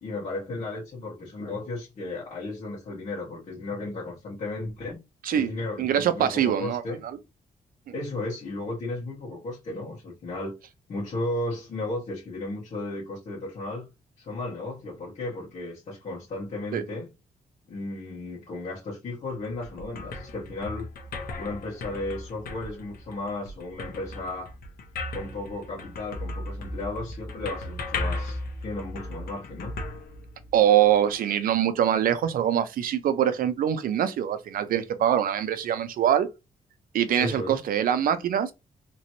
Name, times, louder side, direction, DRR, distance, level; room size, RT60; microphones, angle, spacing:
voice 1, 0.0-5.0 5.3-7.0 7.9-10.5 10.9-13.9 14.2-17.1 17.7-20.9 21.3-24.5 25.1-29.8 37.2-37.6, left 2 dB, 50° left, 1.3 m, -34 dB
voice 2, 5.8-6.8 16.7-16.8 30.5-36.3 36.9-38.5, right 10 dB, 75° right, 0.5 m, -23 dB
sound 1, 19.3-30.8, left 2 dB, 85° left, 0.8 m, -36 dB
3.0 x 2.9 x 2.7 m
wide cardioid pair, 170°, 15 cm